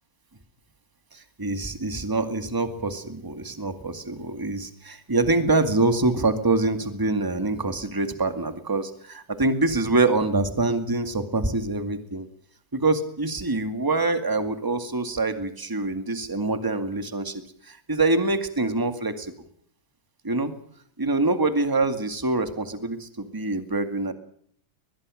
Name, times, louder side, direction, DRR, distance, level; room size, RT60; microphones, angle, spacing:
voice 1, 1.1-12.3 12.7-19.5 20.2-20.5 21.0-24.1, right 2 dB, 10° right, 9 dB, 1.5 m, -25 dB
23.0 x 21.0 x 6.4 m, 0.63 s
omnidirectional pair, 3.8 m